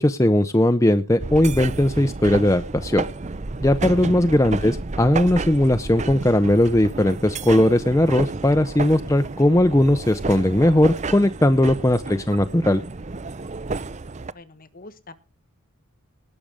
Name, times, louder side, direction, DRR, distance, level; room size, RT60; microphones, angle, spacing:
voice 1, 0.0-3.0 3.6-12.8, left 1 dB, 15° left, 8 dB, 0.7 m, -18 dB
sound 1, 1.2-14.3, right 3 dB, 35° right, 0.6 m, -31 dB
voice 2, 4.4-4.7 12.1-12.6 14.3-15.1, left 2 dB, 40° left, 13 dB, 1.3 m, -45 dB
19.0 x 6.8 x 5.0 m, 0.31 s
head